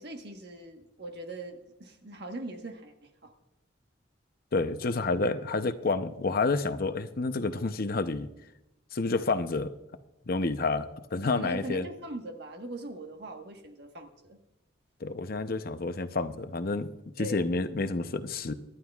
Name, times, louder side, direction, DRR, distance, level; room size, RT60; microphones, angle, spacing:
voice 1, 0.0-3.3 11.3-14.4 17.2-17.5, right 2 dB, 60° right, 5 dB, 1.4 m, -41 dB
voice 2, 4.5-8.3 8.9-9.7 10.3-11.9 15.0-16.9 17.2-18.5, left 3 dB, 50° left, 9 dB, 0.7 m, -29 dB
25.0 x 11.5 x 2.4 m, 0.92 s
head